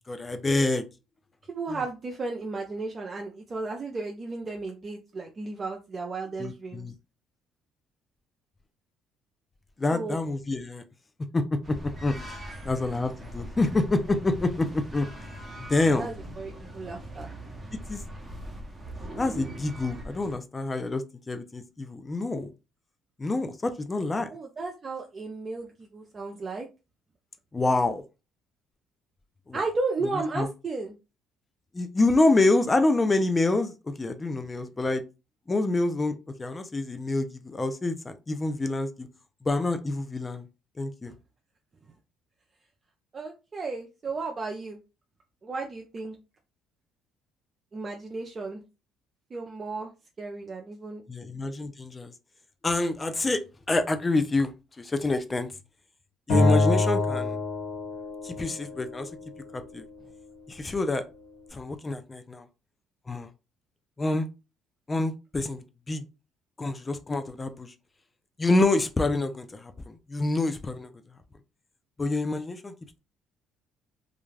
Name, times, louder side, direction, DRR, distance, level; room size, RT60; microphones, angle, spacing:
voice 1, 0.1-0.8 1.7-1.8 6.4-6.9 9.8-10.8 11.3-12.1 12.6-15.1 15.6-16.1 17.9-18.0 19.2-22.5 23.2-24.3 27.5-28.0 29.5-29.6 30.4-30.5 31.7-35.0 35.5-39.1 39.4-40.5 40.8-41.1 51.1-52.1 52.6-53.4 53.7-54.5 54.8-55.5 56.3-57.4 58.2-59.1 59.5-59.8 60.5-61.0 61.5-62.5 63.1-63.3 64.0-64.3 64.9-66.0 66.6-67.7 68.4-70.9 72.0-72.7, left 2 dB, 25° left, 9 dB, 0.5 m, -27 dB
voice 2, 1.5-6.9 9.9-10.2 12.5-12.7 15.8-17.3 24.3-26.7 29.5-30.9 43.1-44.8 45.4-46.2 47.7-48.6 49.3-49.9 50.2-51.0, right 3 dB, 35° right, 1 dB, 0.5 m, -34 dB
sound 1, 11.6-20.4, right 1 dB, 15° right, 0.9 m, -41 dB
Acoustic guitar, 56.3-59.5, left 2 dB, 70° left, 1.4 m, -26 dB
2.4 x 2.2 x 3.2 m, 0.28 s
supercardioid pair, 80°, 0 cm